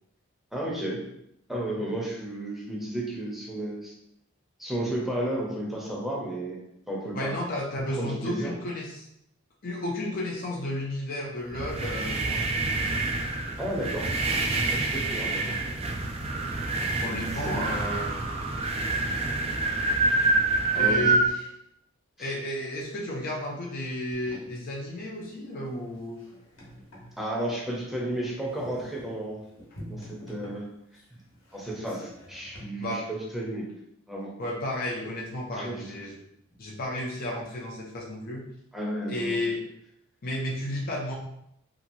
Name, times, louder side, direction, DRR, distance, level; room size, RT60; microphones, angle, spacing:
voice 1, 0.5-1.0 1.5-3.9 4.6-7.3 7.9-8.6 13.6-14.1 14.7-15.7 17.1-17.8 20.7-21.1 22.2-22.3 27.2-29.4 29.8-30.7 31.5-33.6 34.1-34.3 35.6-35.8 38.7-39.4, right 1 dB, ahead, -4 dB, 0.7 m, -33 dB
voice 2, 7.1-9.1 9.6-12.6 17.0-18.3 20.7-21.5 22.2-26.2 28.7-28.8 32.8-33.0 34.4-36.2 36.6-38.5 39.1-39.6 40.2-41.2, left 1 dB, 45° left, -3 dB, 0.5 m, -32 dB
sound 1, 11.5-21.3, right 3 dB, 30° right, 0.3 m, -27 dB
OM FR-staircase-woodenspoon, 24.1-32.6, equal, 75° left, 1.0 m, -48 dB
2.9 x 2.5 x 2.6 m, 0.78 s
head